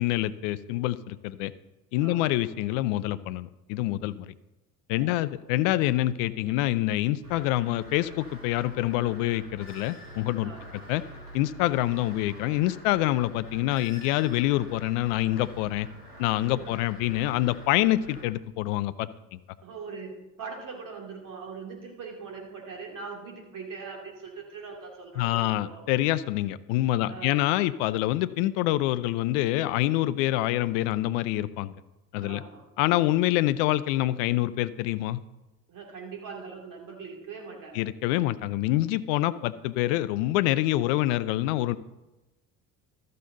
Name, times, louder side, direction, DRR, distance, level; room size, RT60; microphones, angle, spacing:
voice 1, 0.0-1.5 1.9-4.3 4.9-10.5 10.9-11.0 11.3-15.9 16.2-19.4 25.2-31.7 32.1-32.4 32.8-35.2 37.7-41.8, left 15 dB, 55° left, 16 dB, 0.5 m, -26 dB
voice 2, 2.0-2.4 5.0-5.2 10.4-10.8 16.5-16.7 19.6-20.1 20.4-25.8 27.0-27.4 32.2-32.6 35.7-37.9 39.1-39.5, right 5 dB, 45° right, 0 dB, 2.7 m, -41 dB
sound 1, 7.2-18.2, right 1 dB, 85° right, 2.8 m, -45 dB
13.0 x 6.6 x 3.9 m, 1.0 s
figure-of-eight pair, 60°, 45 cm